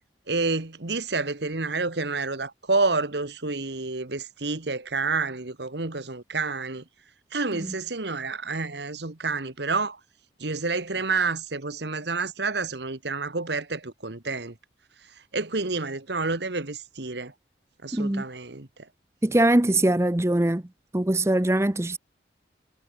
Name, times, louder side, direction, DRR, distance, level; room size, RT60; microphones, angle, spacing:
voice 1, 0.3-6.8 7.3-10.0 10.4-14.5 15.0-17.3 17.8-18.9, right 3 dB, 65° right, 1.6 m, -29 dB
voice 2, 17.9-18.2 19.2-20.6 20.9-22.0, right 1 dB, 15° right, 0.6 m, -22 dB
head